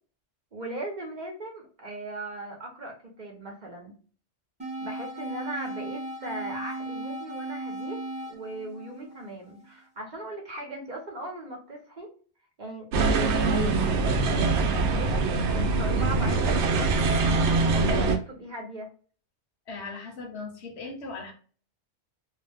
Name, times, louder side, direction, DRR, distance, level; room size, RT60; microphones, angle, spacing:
voice 1, 0.5-4.0 4.8-8.0 8.3-12.1 12.6-12.9 13.1-18.9, right 1 dB, 45° right, 0.8 m, -39 dB
sound 1, 4.6-9.6, right 1 dB, 5° right, 0.7 m, -36 dB
sound 2, 12.9-18.2, right 3 dB, 75° right, 0.9 m, -23 dB
voice 2, 19.7-21.3, left 3 dB, 70° left, 1.0 m, -38 dB
2.5 x 2.1 x 3.3 m
omnidirectional pair, 1.2 m